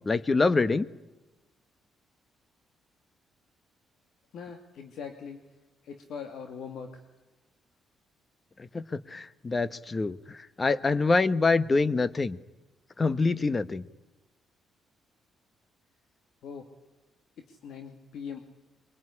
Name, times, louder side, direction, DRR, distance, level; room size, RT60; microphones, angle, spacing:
voice 1, 0.1-0.9 8.7-12.4 13.0-13.8, left 3 dB, 30° left, 16 dB, 1.1 m, -25 dB
voice 2, 4.3-5.5 5.8-7.0 16.4-16.7 17.4-18.4, left 6 dB, 75° left, 5 dB, 2.5 m, -41 dB
24.0 x 23.5 x 9.9 m, 1.1 s
cardioid pair, 90°, 0 cm